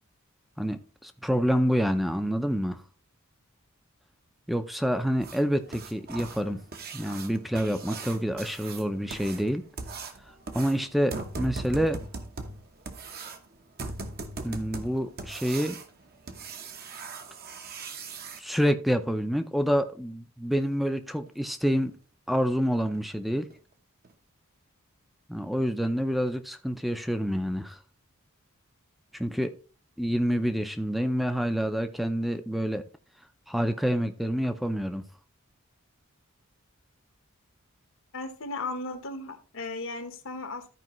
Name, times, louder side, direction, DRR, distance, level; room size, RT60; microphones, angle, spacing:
voice 1, 0.6-2.8 4.5-6.6 6.9-9.6 10.5-12.0 14.4-15.8 18.4-21.9 22.3-23.5 25.3-27.8 29.1-29.5 30.0-32.8 33.5-35.0, equal, ahead, 0.6 m, -27 dB
sound 1, 5.2-18.4 20.7-20.8 21.3-21.4 21.8-21.9 22.4-22.5 22.9-23.1 23.5-23.6 24.0-24.1, right 3 dB, 45° right, 1.0 m, -40 dB
voice 2, 38.1-40.7, left 3 dB, 65° left, 1.2 m, -36 dB
13.5 x 4.9 x 3.1 m
head